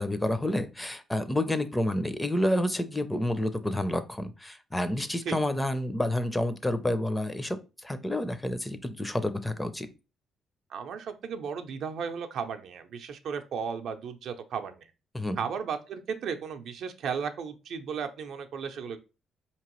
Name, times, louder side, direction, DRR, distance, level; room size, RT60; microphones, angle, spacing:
voice 1, 0.0-9.9 15.1-15.4, left 1 dB, 10° left, 11 dB, 0.5 m, -29 dB
voice 2, 10.7-14.9 15.4-19.0, right 6 dB, 75° right, 7 dB, 0.5 m, -35 dB
4.5 x 2.9 x 3.0 m, 0.30 s
cardioid pair, 90°, 0 cm